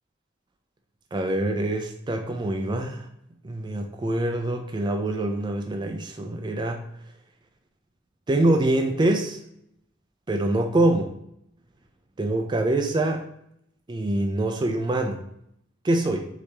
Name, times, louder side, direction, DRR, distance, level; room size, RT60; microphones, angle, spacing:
voice 1, 1.1-3.1 3.4-6.8 8.3-9.4 10.3-11.2 12.2-13.3 13.9-15.2 15.8-16.3, right 1 dB, 20° right, 4 dB, 0.3 m, -25 dB
4.7 x 2.7 x 3.3 m, 0.74 s
head